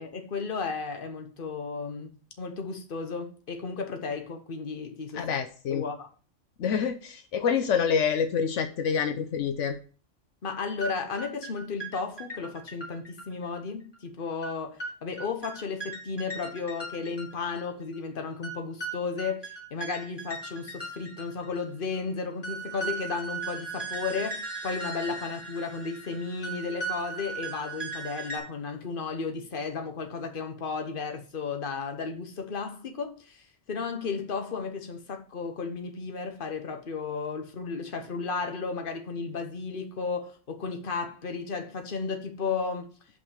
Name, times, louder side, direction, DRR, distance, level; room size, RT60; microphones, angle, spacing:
voice 1, 0.0-5.2 5.7-6.1 10.4-42.9, left 5 dB, 50° left, 1.3 m, -34 dB
voice 2, 5.1-5.8 6.6-9.8, left 7 dB, 80° left, 1.1 m, -27 dB
sound 1, 10.8-10.9 11.2-13.6 13.9-14.0 14.4-14.5 14.8-14.9 15.2-17.7 17.9-18.0 18.4-21.7 21.9-22.0 22.4-28.4, right 3 dB, 20° left, 3.1 m, -37 dB
5.5 x 5.4 x 6.5 m
omnidirectional pair, 1.2 m